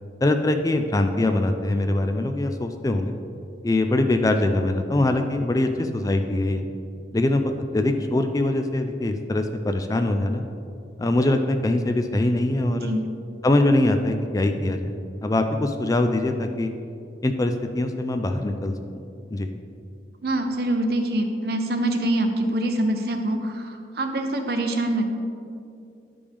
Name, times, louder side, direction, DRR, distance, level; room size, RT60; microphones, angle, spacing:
voice 1, 0.2-3.1 3.6-6.6 7.1-10.4 11.0-12.9 13.4-16.7 17.2-18.7 19.3-19.5, left 2 dB, 20° left, 6 dB, 0.3 m, -23 dB
voice 2, 12.7-13.0 20.2-25.1, right 1 dB, 60° right, 5 dB, 0.7 m, -25 dB
11.5 x 5.1 x 3.4 m, 2.5 s
head